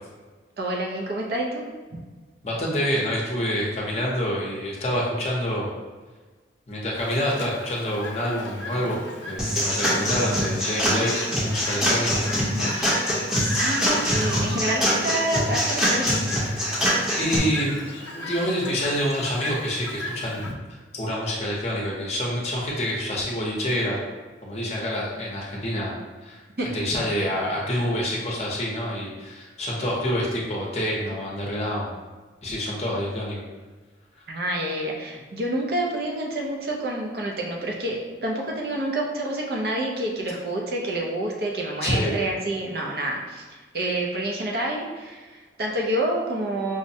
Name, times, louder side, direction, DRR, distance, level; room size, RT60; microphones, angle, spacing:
voice 1, 0.6-1.7 13.6-16.2 26.6-26.7 34.3-43.4 43.7-46.8, right 1 dB, 55° right, -1 dB, 0.6 m, -28 dB
voice 2, 2.4-5.7 6.7-9.0 9.2-12.2 17.2-17.8 18.1-20.6 20.9-24.0 24.4-25.9 26.2-26.4 26.7-32.0 32.4-33.4 41.8-42.2, equal, 35° left, -4 dB, 0.7 m, -27 dB
Chirp tweet, 7.0-20.5, left 2 dB, 85° left, 0.5 m, -38 dB
sound 1, 9.4-17.4, equal, 5° right, 0.8 m, -24 dB
Crying sobbing / Screech, 12.6-14.8 16.7-17.0 17.7-18.7, equal, 85° right, 1.4 m, -37 dB
4.9 x 2.1 x 2.7 m, 1.3 s
head